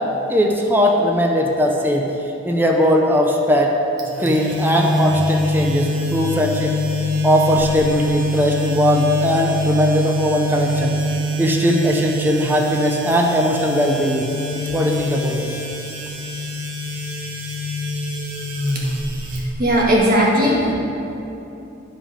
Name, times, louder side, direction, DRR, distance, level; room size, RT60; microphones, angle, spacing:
voice 1, 0.3-2.1 2.4-3.7 4.2-6.8 7.2-10.9 11.4-14.3 14.7-15.5, equal, 10° right, 0 dB, 0.5 m, -19 dB
sound 1, 4.0-20.0, left 1 dB, 80° right, 1.4 m, -24 dB
sound 2, 5.0-11.0, left 1 dB, 35° left, 2.0 m, -33 dB
voice 2, 19.3-20.7, equal, 50° right, -5 dB, 1.8 m, -18 dB
10.5 x 5.0 x 5.1 m, 2.9 s
head